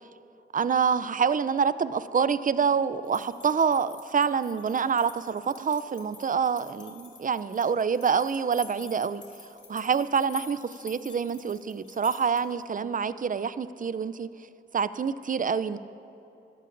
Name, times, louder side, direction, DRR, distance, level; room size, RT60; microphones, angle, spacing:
voice 1, 0.5-9.2 9.7-14.3 14.7-15.8, right 6 dB, 40° right, 15 dB, 0.5 m, -26 dB
sound 1, 3.0-12.6, left 4 dB, 65° left, 2.3 m, -48 dB
21.5 x 11.5 x 2.6 m, 3.0 s
cardioid pair, 55°, 21 cm